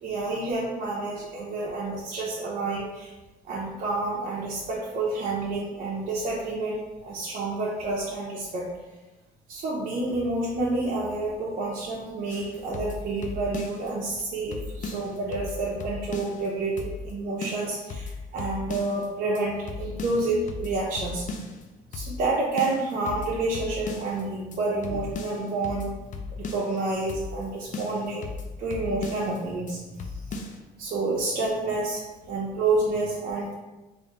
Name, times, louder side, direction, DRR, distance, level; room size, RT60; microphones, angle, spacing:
voice 1, 0.0-3.1 3.5-8.7 9.5-21.2 21.9-25.9 26.3-28.3 28.6-29.8 30.3-30.4 30.8-33.5, right 2 dB, 55° right, -5 dB, 0.7 m, -29 dB
sound 1, 12.3-13.9 14.2-14.3 14.5-16.5 16.8-17.1 17.4-19.1 19.3-19.4 19.7-21.6 21.9-22.3 22.6-24.2 24.5-24.6 24.8-26.8 27.1-27.5 27.7-29.4 29.7-29.8 30.0-30.6, left 3 dB, 50° left, 0.5 m, -36 dB
3.5 x 2.6 x 3.6 m, 1.1 s
cardioid pair, 110°, 17 cm